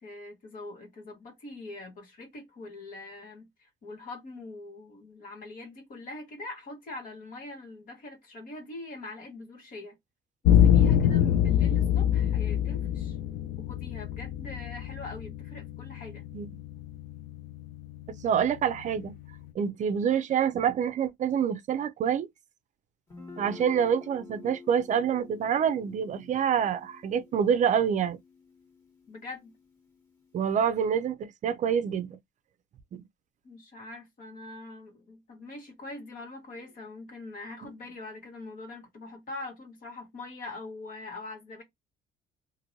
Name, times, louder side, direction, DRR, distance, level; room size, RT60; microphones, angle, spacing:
voice 1, 0.0-10.0 10.4-13.2 13.6-16.3 29.1-29.5 33.4-41.6, left 2 dB, 55° left, 1.5 m, -43 dB
sound 1, 10.4-19.5, left 10 dB, 85° left, 0.4 m, -26 dB
voice 2, 18.1-19.2 19.6-22.3 23.4-28.2 30.3-32.2 32.9-33.0, right 8 dB, 45° right, 0.5 m, -27 dB
Guitar, 23.1-30.8, left 4 dB, 20° left, 1.5 m, -50 dB
2.9 x 2.5 x 2.6 m
cardioid pair, 110°, 17 cm